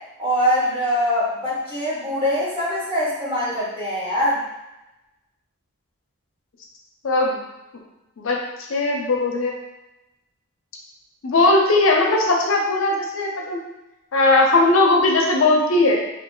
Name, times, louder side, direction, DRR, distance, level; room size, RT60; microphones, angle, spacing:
voice 1, 0.2-4.4, equal, 25° right, -9 dB, 1.1 m, -23 dB
voice 2, 7.0-7.4 8.2-8.4 8.7-9.5 11.2-13.6 14.1-16.0, left 2 dB, 60° left, 0 dB, 0.5 m, -18 dB
2.9 x 2.3 x 3.8 m, 0.98 s
head